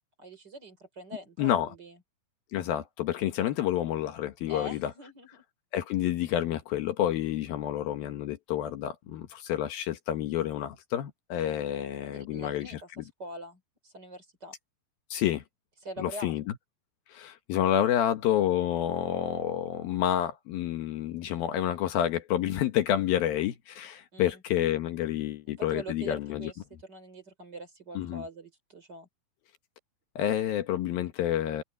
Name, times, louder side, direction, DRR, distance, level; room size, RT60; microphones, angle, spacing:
voice 1, 0.2-2.0 4.5-5.4 12.0-14.5 15.8-16.4 24.1-24.4 25.6-26.6 26.8-29.1, equal, 25° right, 4.5 m, -43 dB
voice 2, 1.4-1.7 2.5-4.9 5.7-13.0 15.1-15.4 16.0-16.5 17.1-26.5 27.9-28.2 30.2-31.6, left 11 dB, 75° left, 3.0 m, -29 dB
omnidirectional pair, 4.5 m